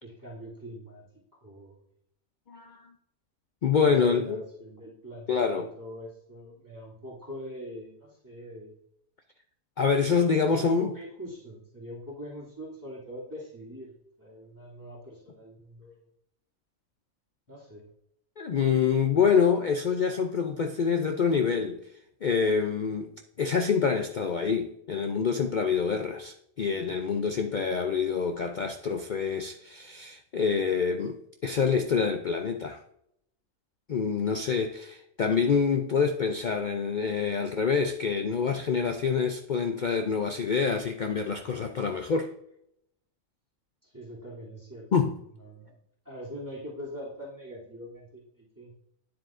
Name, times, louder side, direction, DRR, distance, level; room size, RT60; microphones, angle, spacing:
voice 1, 0.0-1.0 1.4-1.8 3.8-8.7 10.4-16.1 17.5-17.8 43.8-44.9 45.3-45.7 46.0-48.7, equal, 15° right, 2.7 m, -43 dB
voice 2, 2.5-2.9 3.6-4.4 5.3-5.7 9.8-10.9 18.4-21.8 22.2-23.1 23.4-32.8 33.9-42.3 44.9-45.2, left 6 dB, 60° left, 0.5 m, -26 dB
9.6 x 7.6 x 2.5 m
omnidirectional pair, 1.4 m